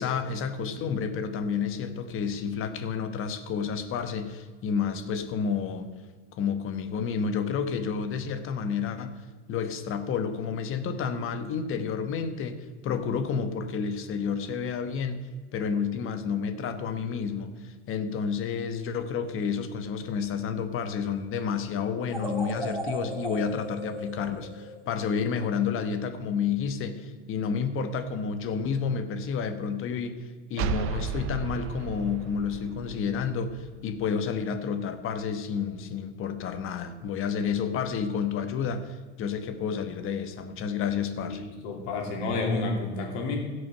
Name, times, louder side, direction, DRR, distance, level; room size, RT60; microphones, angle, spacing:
voice 1, 0.0-5.9 6.3-9.2 9.5-15.3 15.5-30.2 30.5-41.4, left 6 dB, 35° left, 10 dB, 1.2 m, -30 dB
sound 1, 22.1-25.3, right 1 dB, 5° right, 1.9 m, -36 dB
sound 2, 30.6-34.1, right 8 dB, 35° right, 0.6 m, -34 dB
voice 2, 41.3-43.4, left 3 dB, 65° left, 2 dB, 3.1 m, -30 dB
16.0 x 6.6 x 5.5 m, 1.4 s
supercardioid pair, 130°, 36 cm